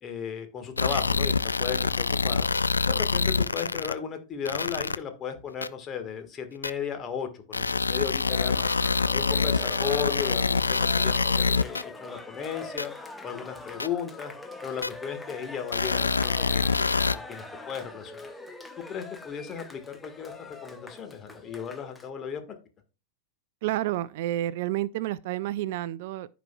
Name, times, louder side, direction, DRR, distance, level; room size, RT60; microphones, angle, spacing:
voice 1, 0.0-2.5 2.9-8.7 9.1-12.9 13.2-14.3 14.6-16.7 17.1-18.3 18.9-22.6, left 7 dB, 25° left, 1.6 m, -35 dB
sound 1, 0.8-3.9 4.5-5.0 5.6-5.7 6.6-6.7 7.5-11.8 12.8-12.9 13.8-13.9 14.8-14.9 15.7-17.2, left 4 dB, 80° left, 0.4 m, -25 dB
Cheering, 8.2-22.1, left 3 dB, 10° left, 0.9 m, -42 dB
voice 2, 23.6-26.3, right 14 dB, 50° right, 0.3 m, -30 dB
14.5 x 5.1 x 2.3 m
figure-of-eight pair, 90°, 0 cm